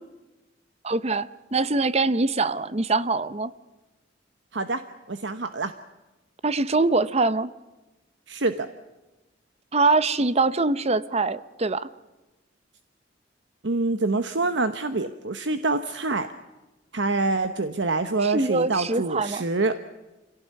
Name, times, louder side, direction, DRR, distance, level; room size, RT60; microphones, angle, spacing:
voice 1, 0.8-3.5 6.4-7.5 9.7-11.9 18.2-19.4, right 3 dB, 35° right, 16 dB, 0.8 m, -23 dB
voice 2, 5.1-5.7 8.3-8.7 13.6-16.3 16.9-19.8, right 3 dB, 65° right, 10 dB, 1.1 m, -26 dB
26.5 x 17.5 x 9.4 m, 1.1 s
head